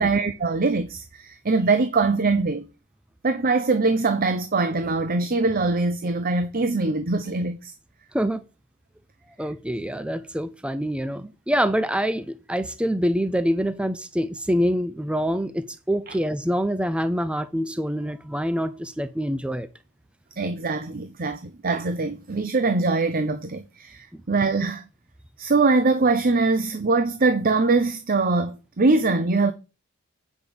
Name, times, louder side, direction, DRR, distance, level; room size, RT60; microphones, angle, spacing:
voice 1, 0.0-2.6 3.2-7.7 16.1-16.2 20.4-24.8 25.4-29.5, right 3 dB, 45° right, 0.8 m, -22 dB
voice 2, 9.4-19.7 24.1-24.2, equal, 5° right, 0.5 m, -25 dB
8.2 x 5.3 x 6.9 m
head